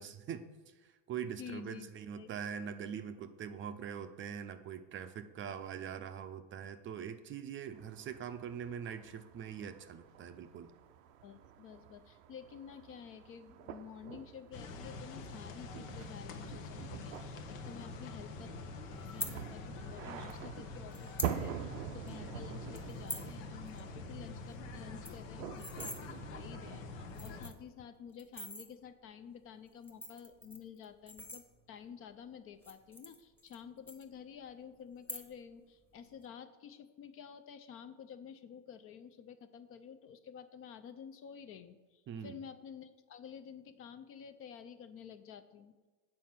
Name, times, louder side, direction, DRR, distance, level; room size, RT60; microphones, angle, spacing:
voice 1, 0.0-10.7 42.1-42.4, right 8 dB, 30° right, 10 dB, 0.5 m, -43 dB
voice 2, 1.4-2.3 11.2-18.5 19.0-45.9, left 7 dB, 35° left, 10 dB, 0.5 m, -51 dB
sound 1, 7.7-27.4, right 9 dB, 80° right, 0.6 m, -47 dB
sound 2, 14.5-27.5, left 3 dB, 75° left, 0.9 m, -46 dB
sound 3, 19.0-19.3 20.3-20.4 20.9-21.4 21.7-21.8 22.1-22.3 22.7-23.3 23.7-23.8 24.1-24.2 24.5-24.6 24.8-26.0 26.7-26.8 27.1-27.7 28.2-28.7 29.7-31.8 32.5-33.6 33.9-34.5 34.9-35.5 35.8-36.2, left 1 dB, 5° left, 0.9 m, -44 dB
7.6 x 4.3 x 5.8 m, 1.2 s
hypercardioid pair, 100°, 39 cm